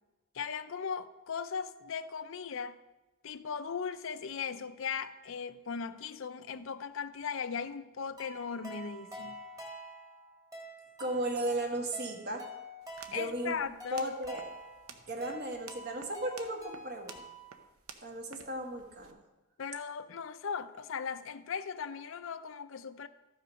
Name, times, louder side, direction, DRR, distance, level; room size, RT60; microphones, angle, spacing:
voice 1, 0.3-2.8 3.2-9.4 13.1-14.0 19.6-23.1, left 6 dB, 60° left, 0.5 m, -38 dB
sound 1, 8.2-17.6, equal, 15° right, 1.7 m, -48 dB
voice 2, 11.0-12.5 13.1-13.6 13.9-14.4 15.1-17.2 18.0-19.2, right 1 dB, 45° right, 1.5 m, -35 dB
sound 2, 12.8-19.1, right 6 dB, 75° right, 0.9 m, -54 dB
13.5 x 5.6 x 5.2 m
head